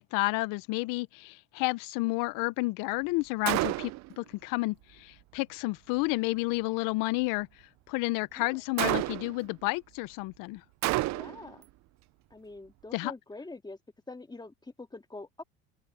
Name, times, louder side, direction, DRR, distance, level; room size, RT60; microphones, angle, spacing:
voice 1, 0.0-7.5 7.9-10.6 12.9-13.1, left 24 dB, 70° left, 0.9 m, -31 dB
Gunshot gunfire, 3.5-4.1 8.8-9.5 10.8-11.5, right 18 dB, 55° right, 0.6 m, -29 dB
voice 2, 11.1-11.7 12.3-13.8 14.1-15.4, left 2 dB, 10° left, 2.1 m, -44 dB
supercardioid pair, 95°, 34 cm